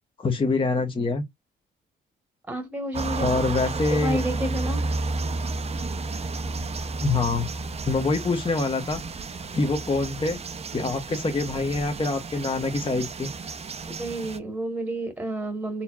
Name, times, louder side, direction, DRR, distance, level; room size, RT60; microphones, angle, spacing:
voice 1, 0.2-1.2 3.2-4.2 7.0-7.5 7.9-9.0 9.5-10.4 10.7-13.3, left 3 dB, 25° left, 1.0 m, -25 dB
voice 2, 2.5-3.4 3.9-4.8 13.9-15.8, right 1 dB, 5° right, 1.3 m, -30 dB
sound 1, 2.9-14.4, right 3 dB, 30° right, 0.7 m, -32 dB
4.3 x 2.8 x 2.4 m
cardioid pair, 90°, 20 cm